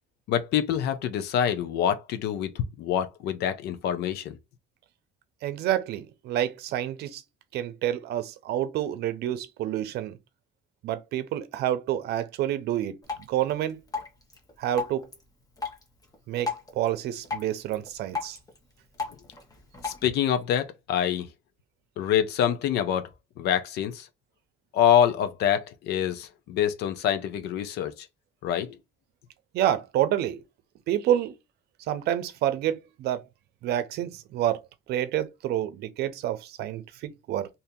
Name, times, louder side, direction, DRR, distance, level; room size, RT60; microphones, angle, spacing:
voice 1, 0.3-4.4 19.8-21.3 22.0-23.1 23.4-24.1 24.7-27.9 28.4-28.8, left 9 dB, 75° left, 0.7 m, -26 dB
voice 2, 5.4-7.2 7.5-10.1 10.8-13.0 13.3-13.8 14.6-15.1 16.3-18.4 29.5-30.4 30.9-31.3 31.9-33.2 33.6-34.6 34.9-37.5, right 12 dB, 75° right, 0.6 m, -28 dB
Drip, 13.0-20.0, left 4 dB, 20° left, 1.1 m, -38 dB
2.7 x 2.7 x 3.7 m
cardioid pair, 110°, 17 cm